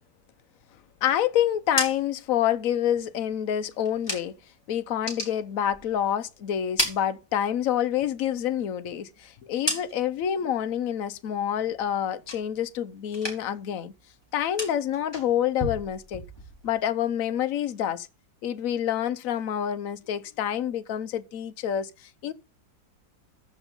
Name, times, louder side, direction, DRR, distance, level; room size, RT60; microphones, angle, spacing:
voice 1, 1.0-4.3 4.7-13.9 14.3-16.2 16.6-18.1 18.4-22.3, left 10 dB, 55° left, 1.0 m, -27 dB
sound 1, 1.5-4.6 4.9-6.2 6.5-7.8 8.2-10.3 10.7-11.1 11.5-12.8 13.1-13.7 13.9-16.8, left 1 dB, 10° left, 3.7 m, -35 dB
14.0 x 5.4 x 5.4 m
omnidirectional pair, 2.1 m